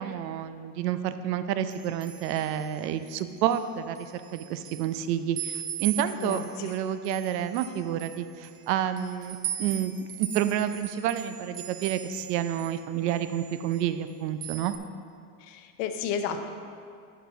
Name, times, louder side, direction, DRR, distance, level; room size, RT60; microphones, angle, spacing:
voice 1, 0.0-14.8, right 10 dB, 85° right, 11 dB, 0.7 m, -29 dB
sound 1, 1.7-3.6 3.9-5.0 5.4-12.8 13.1-14.1 14.4-14.8, right 11 dB, 55° right, 0.9 m, -39 dB
voice 2, 6.2-6.7 15.5-16.4, left 7 dB, 50° left, 7 dB, 0.8 m, -32 dB
7.1 x 6.1 x 6.0 m, 2.3 s
supercardioid pair, 150°, 48 cm